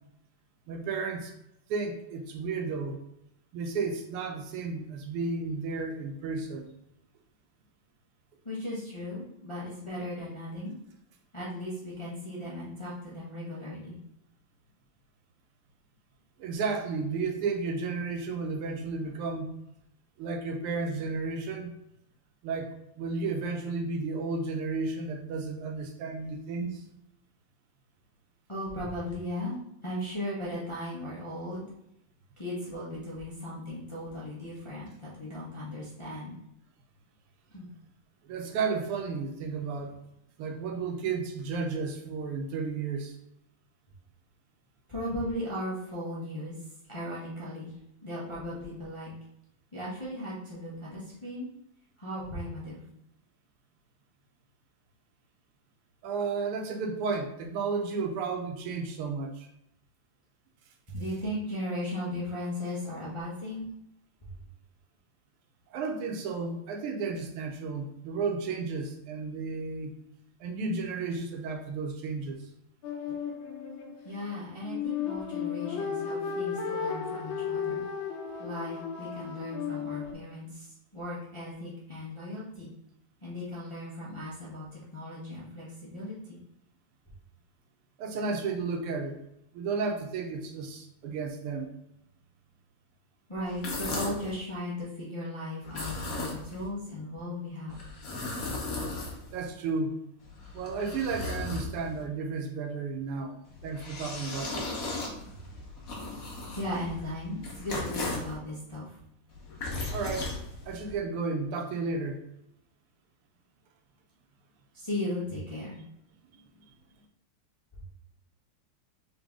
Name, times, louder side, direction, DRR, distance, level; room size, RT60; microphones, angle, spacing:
voice 1, 0.7-1.3 1.7-3.0 3.5-6.7 16.4-19.5 20.2-21.7 22.4-26.8 38.2-39.9 40.4-43.2 56.0-59.5 65.7-69.9 70.4-72.5 73.1-73.2 88.0-89.2 89.5-91.7 99.3-99.9 100.5-104.8 109.9-110.4 110.7-112.2 116.2-116.7, right 4 dB, 85° right, 3 dB, 1.7 m, -33 dB
voice 2, 8.4-10.7 11.3-14.0 26.6-26.7 28.5-29.6 29.8-31.7 32.4-36.3 37.5-37.7 44.9-46.5 46.9-47.7 48.0-49.1 49.7-51.5 52.0-52.8 60.9-63.7 74.0-77.8 78.4-82.7 83.2-86.4 93.3-97.7 106.6-109.0 114.7-115.8, left 1 dB, 25° left, -8 dB, 0.7 m, -37 dB
sound 1, 72.8-80.1, left 7 dB, 70° left, 1.6 m, -34 dB
sound 2, 93.5-94.3 95.6-96.7 97.7-99.5 100.2-102.0 103.4-108.3 109.3-110.9, left 2 dB, 50° left, 1.3 m, -37 dB
3.9 x 3.8 x 3.6 m, 0.81 s
omnidirectional pair, 2.4 m